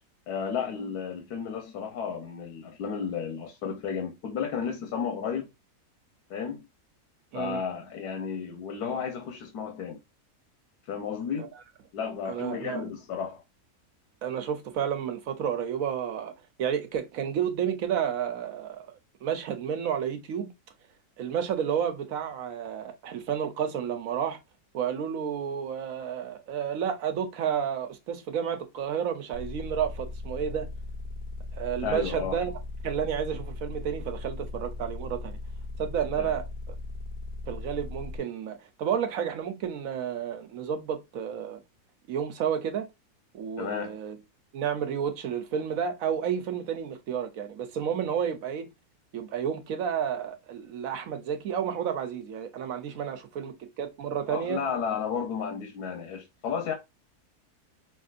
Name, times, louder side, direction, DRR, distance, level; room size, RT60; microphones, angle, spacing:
voice 1, 0.3-5.5 6.3-6.7 7.3-10.0 10.8-11.5 11.9-13.4 31.8-32.4 36.2-36.3 43.6-44.0 54.3-56.7, left 7 dB, 85° left, 1.4 m, -33 dB
voice 2, 7.3-7.6 11.4-11.5 12.2-12.8 14.2-16.3 16.6-20.5 21.2-24.4 24.7-30.7 31.5-32.5 32.8-35.4 35.8-36.7 37.5-41.6 42.1-42.9 43.3-44.2 44.5-48.7 49.1-54.6, right 8 dB, 65° right, 1.2 m, -31 dB
sound 1, 29.3-38.2, left 3 dB, 40° right, 0.9 m, -38 dB
5.5 x 2.7 x 2.5 m
omnidirectional pair, 1.6 m